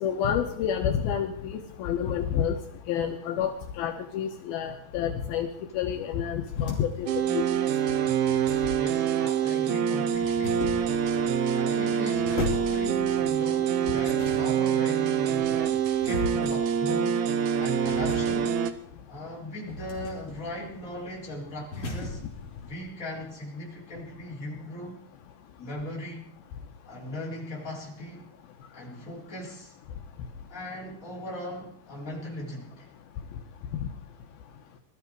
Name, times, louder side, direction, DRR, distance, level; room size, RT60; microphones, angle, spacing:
voice 1, 0.0-2.6 2.9-5.5 5.7-7.4 33.8-33.9, left 8 dB, 75° left, 4 dB, 2.7 m, -29 dB
sound 1, 6.0-22.7, left 3 dB, 40° left, 4.5 m, -40 dB
sound 2, 7.1-18.7, right 8 dB, 75° right, 2.7 m, -26 dB
voice 2, 8.8-10.7 11.5-17.2 17.6-18.6 19.1-22.2 22.7-25.0 25.6-26.3 26.9-28.3 28.7-29.7 30.5-32.9, left 1 dB, 20° left, -3 dB, 4.0 m, -38 dB
21.5 x 13.0 x 4.7 m, 0.69 s
omnidirectional pair, 4.5 m